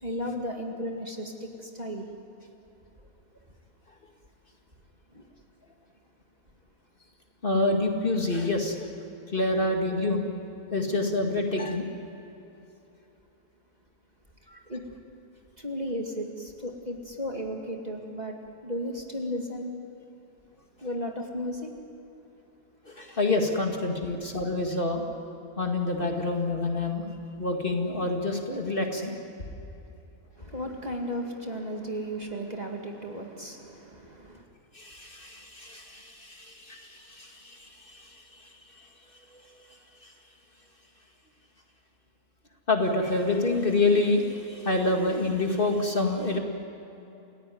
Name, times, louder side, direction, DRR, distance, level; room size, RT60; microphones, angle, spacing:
voice 1, 0.0-2.1 5.1-5.3 14.7-14.8 15.6-19.7 20.8-21.7 30.4-34.4, equal, 30° right, 1 dB, 2.3 m, -34 dB
voice 2, 7.4-8.9 9.3-10.2 10.7-11.9 14.5-14.6 22.9-25.0 25.6-27.1 27.4-29.1 34.7-38.9 39.3-39.5 40.0-40.1 42.7-46.4, left 2 dB, 35° left, 2 dB, 2.3 m, -27 dB
29.0 x 16.5 x 9.5 m, 2.9 s
omnidirectional pair, 1.5 m